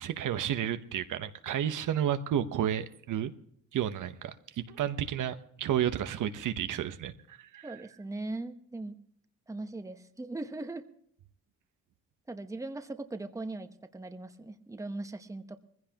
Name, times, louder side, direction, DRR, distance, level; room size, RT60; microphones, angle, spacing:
voice 1, 0.0-3.3 3.7-7.8, right 10 dB, 70° right, 0.9 m, -32 dB
voice 2, 7.6-9.0 9.5-10.8 12.3-15.6, right 2 dB, 10° right, 0.9 m, -39 dB
20.5 x 15.5 x 2.9 m
cardioid pair, 100°, 32 cm